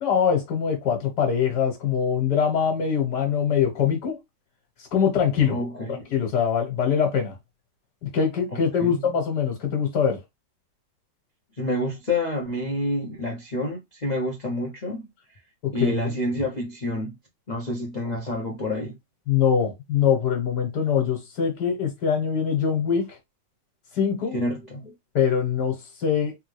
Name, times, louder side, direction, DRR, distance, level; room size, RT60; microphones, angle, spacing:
voice 1, 0.0-4.2 4.8-5.6 5.9-7.4 8.1-10.2 15.6-16.1 19.3-23.2 23.9-24.4 25.2-26.4, left 7 dB, 65° left, 1.7 m, -23 dB
voice 2, 5.4-6.0 8.5-9.0 11.6-15.1 15.7-17.1 17.5-19.0 24.3-24.9, left 1 dB, 45° left, 0.5 m, -28 dB
3.5 x 3.0 x 3.2 m
omnidirectional pair, 2.0 m